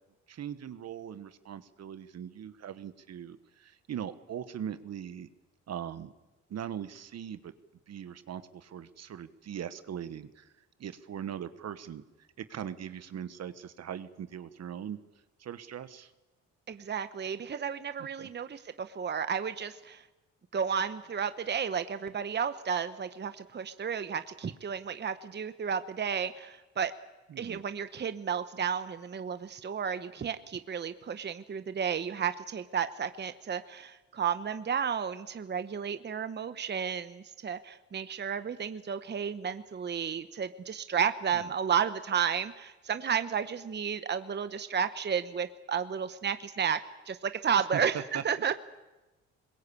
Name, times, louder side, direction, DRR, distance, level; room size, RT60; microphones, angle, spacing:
voice 1, 0.3-5.3 5.7-6.1 6.5-7.5 7.9-10.5 10.8-15.0 15.4-16.1 18.0-18.3 27.3-27.6 41.3-41.5 47.7-48.5, right 9 dB, 60° right, 12 dB, 1.2 m, -40 dB
voice 2, 16.7-20.0 20.5-26.9 27.4-46.8 47.1-48.5, right 7 dB, 35° right, 11 dB, 1.0 m, -32 dB
21.5 x 21.0 x 8.5 m, 1.1 s
cardioid pair, 90°, 30 cm